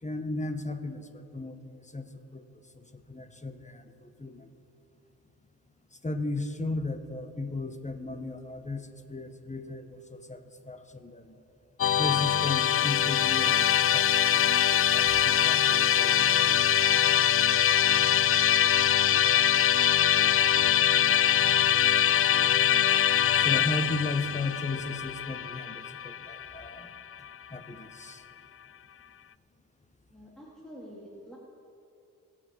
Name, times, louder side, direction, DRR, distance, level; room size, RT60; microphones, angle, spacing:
voice 1, 0.0-2.4 2.7-4.5 6.0-11.4 12.0-14.1 14.4-16.5 23.3-26.9 27.5-28.2, left 2 dB, 20° left, 8 dB, 1.4 m, -36 dB
Musical instrument, 11.8-27.0, left 10 dB, 35° left, 0.4 m, -23 dB
voice 2, 30.1-31.4, equal, ahead, -6 dB, 3.0 m, -47 dB
21.5 x 7.7 x 4.8 m, 2.7 s
supercardioid pair, 45°, 38 cm